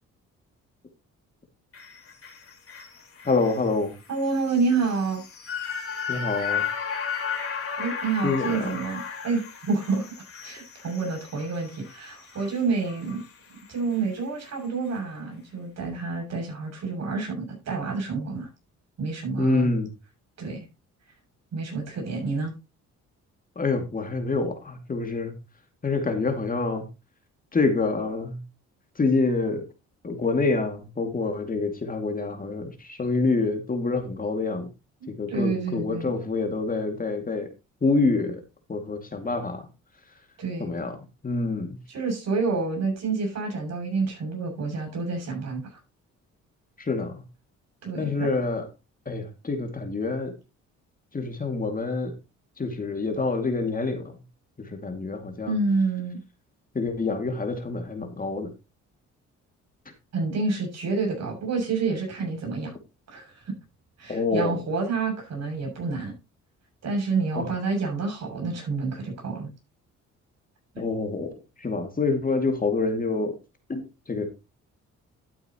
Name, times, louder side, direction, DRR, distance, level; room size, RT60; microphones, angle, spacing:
sound 1, 1.7-14.1 14.4-14.5, left 7 dB, 45° left, 3.5 m, -35 dB
voice 1, 3.2-3.9 6.1-6.6 8.2-8.7 19.4-19.9 23.6-25.4 25.8-26.9 27.5-28.4 29.0-29.6 30.0-34.7 35.1-37.5 37.8-38.4 38.7-39.7 40.6-41.0 41.2-41.8 46.8-47.2 48.0-48.7 49.1-50.3 51.1-52.1 52.6-54.2 54.6-55.5 56.7-58.5 64.1-64.6 67.4-67.5 70.8-73.4 73.7-74.3, left 3 dB, 30° left, 5 dB, 2.3 m, -27 dB
voice 2, 4.1-5.2 7.8-10.1 10.4-13.2 13.7-18.5 19.0-19.7 20.4-20.7 21.5-22.5 35.3-36.1 40.4-40.7 41.9-45.8 47.8-48.3 55.4-56.2 60.1-62.7 63.1-63.5 64.0-66.1 66.8-69.5, right 4 dB, 60° right, 1 dB, 7.0 m, -28 dB
12.0 x 8.7 x 3.0 m, 0.27 s
cardioid pair, 90°, 30 cm